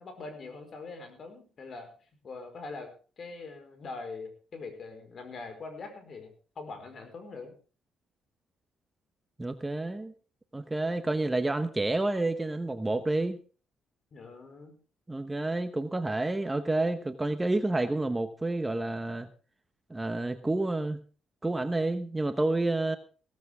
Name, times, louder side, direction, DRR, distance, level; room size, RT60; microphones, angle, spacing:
voice 1, 0.0-1.9 2.2-2.9 3.2-6.3 6.5-7.5 14.1-14.7, left 3 dB, 50° left, 6 dB, 4.8 m, -42 dB
voice 2, 9.4-10.1 10.5-13.4 15.1-19.3 19.9-21.0 21.4-23.0, right 2 dB, 15° right, 9 dB, 1.1 m, -29 dB
16.5 x 14.5 x 3.6 m, 0.37 s
cardioid pair, 90°, 0 cm